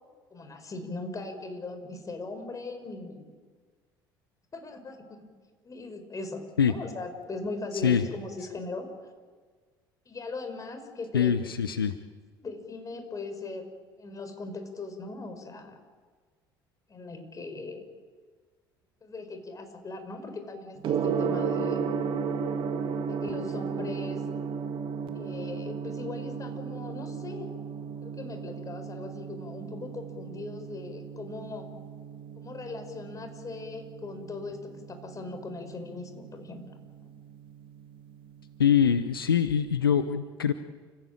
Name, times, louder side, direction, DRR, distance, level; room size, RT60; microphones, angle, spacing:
voice 1, 0.3-3.3 4.5-5.1 5.6-9.1 10.0-11.4 12.4-13.7 14.0-15.8 16.9-17.8 19.0-21.9 23.1-24.2 25.1-27.5 28.0-31.7 32.4-36.6 37.0-37.1, left 3 dB, 30° left, 7 dB, 5.1 m, -39 dB
voice 2, 11.1-11.9 38.6-40.5, left 8 dB, 85° left, 11 dB, 0.7 m, -23 dB
Gong, 20.8-39.9, right 6 dB, 50° right, 2.4 m, -35 dB
29.0 x 16.0 x 9.0 m, 1.5 s
figure-of-eight pair, 60°, 12 cm